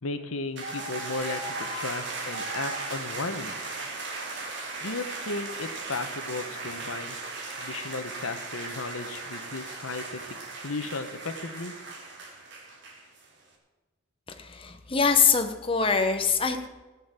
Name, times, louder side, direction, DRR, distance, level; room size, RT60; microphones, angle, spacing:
voice 1, 0.0-3.6 4.8-7.2 7.6-10.2 10.6-11.7, left 3 dB, 85° left, 9 dB, 1.1 m, -35 dB
sound 1, 0.6-13.2, right 3 dB, 55° right, 3.2 m, -37 dB
voice 2, 14.4-16.7, left 5 dB, 25° left, 6 dB, 1.0 m, -24 dB
16.5 x 7.4 x 7.4 m, 1.2 s
head